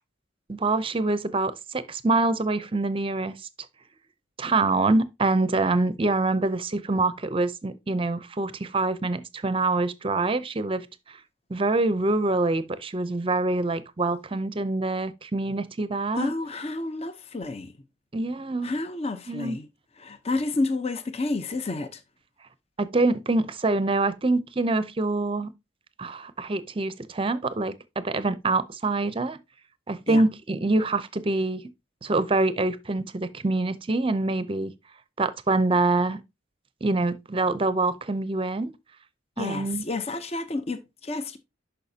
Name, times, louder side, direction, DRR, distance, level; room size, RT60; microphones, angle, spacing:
voice 1, 0.5-3.3 4.4-11.2 11.5-16.3 18.1-18.7 19.3-19.6 22.8-25.5 26.0-29.4 29.9-31.7 32.0-34.7 35.2-36.2 36.8-38.7 39.4-39.8, right 2 dB, 30° right, 0.6 m, -25 dB
voice 2, 16.1-17.7 18.6-19.7 20.0-22.0 30.1-30.2 39.4-41.4, left 2 dB, 35° left, 0.7 m, -30 dB
11.0 x 5.4 x 2.8 m
head